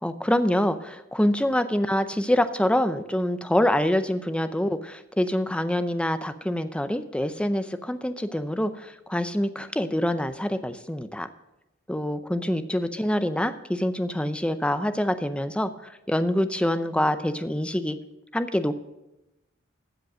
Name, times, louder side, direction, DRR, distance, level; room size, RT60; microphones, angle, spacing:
voice 1, 0.0-11.3 11.9-18.0 18.3-18.8, left 1 dB, 5° left, 10 dB, 0.5 m, -25 dB
15.5 x 5.2 x 6.4 m, 0.95 s
head